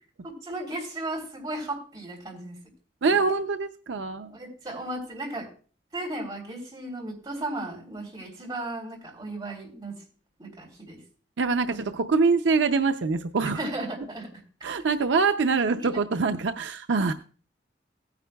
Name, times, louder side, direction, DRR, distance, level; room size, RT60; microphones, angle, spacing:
voice 1, 0.2-2.6 3.1-3.2 4.2-5.5 5.9-9.9 10.4-11.0 11.7-11.9 13.5-14.3 15.8-16.0, right 1 dB, 20° right, -2 dB, 3.4 m, -35 dB
voice 2, 3.0-4.3 11.4-13.6 14.6-17.1, right 4 dB, 80° right, 8 dB, 0.5 m, -24 dB
17.0 x 9.7 x 2.3 m, 0.39 s
head